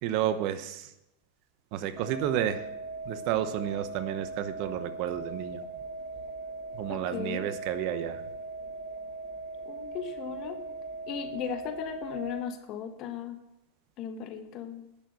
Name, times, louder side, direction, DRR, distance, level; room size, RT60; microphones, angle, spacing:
voice 1, 0.0-0.9 1.7-2.6 3.0-5.6 6.7-8.2, right 11 dB, 55° right, 12 dB, 0.9 m, -31 dB
sound 1, 2.0-12.4, right 3 dB, 35° right, 1.9 m, -39 dB
voice 2, 6.9-7.5 9.6-10.6 11.1-13.4 14.0-14.8, left 8 dB, 45° left, 8 dB, 1.3 m, -37 dB
10.0 x 6.6 x 6.9 m, 0.91 s
hypercardioid pair, 105°, 0 cm